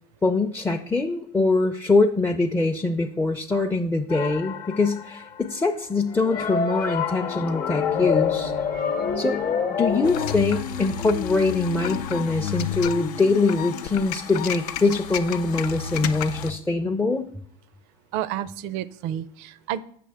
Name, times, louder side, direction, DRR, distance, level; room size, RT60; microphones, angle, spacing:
voice 1, 0.2-8.5 9.2-17.2, left 3 dB, 10° left, 2 dB, 0.4 m, -23 dB
sound 1, 4.1-5.5 6.1-10.3, left 6 dB, 45° left, 0.8 m, -27 dB
sound 2, 10.0-16.5, left 9 dB, 80° left, 0.5 m, -31 dB
voice 2, 18.1-19.8, right 11 dB, 65° right, 18 dB, 0.4 m, -30 dB
7.6 x 6.0 x 3.4 m, 0.65 s
hypercardioid pair, 85°, 20 cm